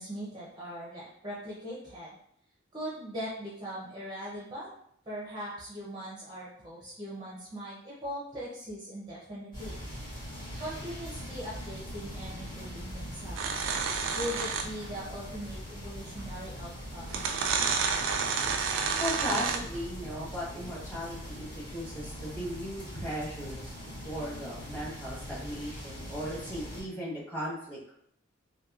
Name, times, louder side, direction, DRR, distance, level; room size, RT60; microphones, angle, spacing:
voice 1, 0.0-2.2 2.7-4.7 5.1-9.8 10.6-13.6 14.1-17.2, equal, 20° right, -6 dB, 0.6 m, -40 dB
sound 1, 9.5-26.8, equal, 45° left, 1.5 m, -42 dB
sound 2, 13.4-14.9 16.2-16.3 17.1-19.8, right 5 dB, 65° right, 0.3 m, -30 dB
voice 2, 19.0-27.8, equal, 10° left, -8 dB, 1.1 m, -37 dB
2.9 x 2.6 x 2.3 m, 0.69 s
head